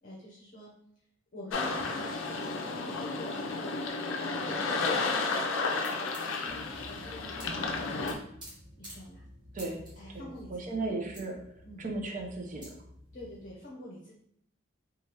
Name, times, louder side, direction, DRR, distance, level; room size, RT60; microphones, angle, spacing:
voice 1, 0.0-0.7 1.3-8.0 8.8-9.2 10.0-10.6 11.6-11.9 13.1-14.1, left 1 dB, 45° left, -4 dB, 0.7 m, -47 dB
sound 1, 1.5-8.1, left 3 dB, 80° left, 0.4 m, -32 dB
sound 2, 5.8-5.9 6.1-7.1 7.4-7.5 7.8-8.5 8.8-8.9 9.6-10.4 10.7-10.8 11.1-11.2 12.2-12.3 12.6-12.7, right 1 dB, 25° right, 1.0 m, -48 dB
sound 3, 6.4-13.5, left 1 dB, 70° right, 0.9 m, -52 dB
voice 2, 10.1-11.3 11.8-12.6, right 2 dB, 40° right, 2 dB, 0.6 m, -35 dB
3.1 x 2.3 x 2.9 m, 0.71 s
head